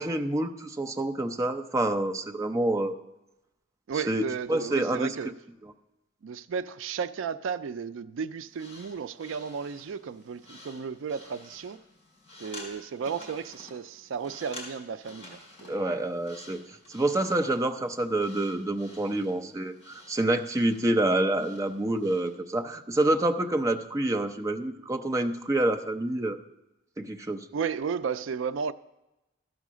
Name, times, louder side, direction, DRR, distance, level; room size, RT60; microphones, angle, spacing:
voice 1, 0.0-2.9 4.1-4.2 4.5-5.1 15.7-16.6 16.9-26.4 27.0-27.5, right 1 dB, 15° right, 0.5 m, -27 dB
voice 2, 3.9-5.3 6.2-11.8 12.4-15.8 27.5-28.7, right 6 dB, 80° right, 0.4 m, -34 dB
sound 1, 8.5-22.3, left 2 dB, 30° left, 4.0 m, -50 dB
14.0 x 5.6 x 6.1 m
head